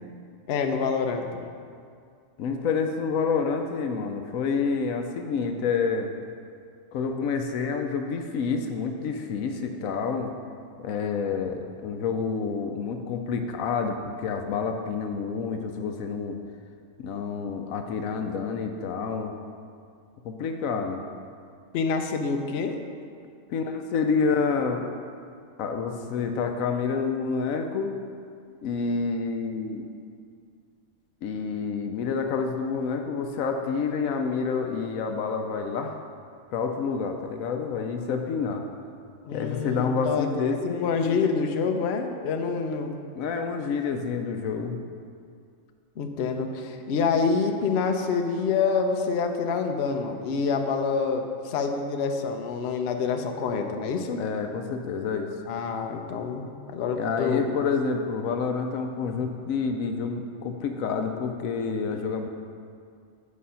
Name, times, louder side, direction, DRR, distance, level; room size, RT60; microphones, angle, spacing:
voice 1, 0.5-1.3 21.7-22.8 39.2-42.9 46.0-54.2 55.5-57.5, left 5 dB, 60° left, 5 dB, 0.8 m, -27 dB
voice 2, 2.4-6.1 6.9-10.3 10.8-16.4 17.0-19.3 20.2-21.0 23.5-24.9 25.6-27.9 28.6-29.9 31.2-36.0 36.5-38.6 39.3-41.2 43.1-44.8 54.2-55.3 56.9-62.3, left 5 dB, 80° left, 5 dB, 1.0 m, -28 dB
8.5 x 5.1 x 5.6 m, 2.3 s
omnidirectional pair, 1.4 m